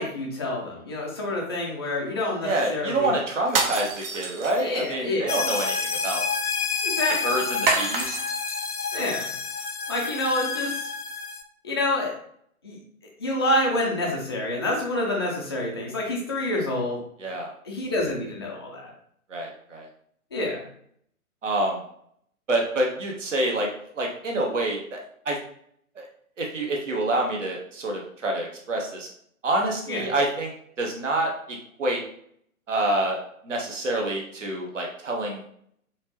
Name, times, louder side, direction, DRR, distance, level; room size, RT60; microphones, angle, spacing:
voice 1, 0.0-3.2 4.6-5.2 6.8-7.4 8.9-9.3 9.9-10.9 11.6-12.1 12.6-12.8 13.2-17.0 17.2-17.3 17.6-18.9 20.3-20.6 29.9-30.0, left 1 dB, 20° left, -3 dB, 0.4 m, -27 dB
voice 2, 2.4-3.9 4.1-6.2 7.2-8.2 17.2-17.5 19.3-19.9 21.4-21.8 22.5-23.7 24.0-25.0 25.2-25.4 26.0-26.1 26.4-29.1 29.4-30.5 30.8-32.0 32.7-33.2 33.4-35.4, right 1 dB, 55° right, 0 dB, 1.0 m, -27 dB
sound 1, 3.5-4.9 7.7-8.6, right 3 dB, 40° right, 0.6 m, -27 dB
sound 2, 5.3-11.4, left 5 dB, 80° left, 0.7 m, -29 dB
4.4 x 2.8 x 3.0 m, 0.66 s
figure-of-eight pair, 125°, 44 cm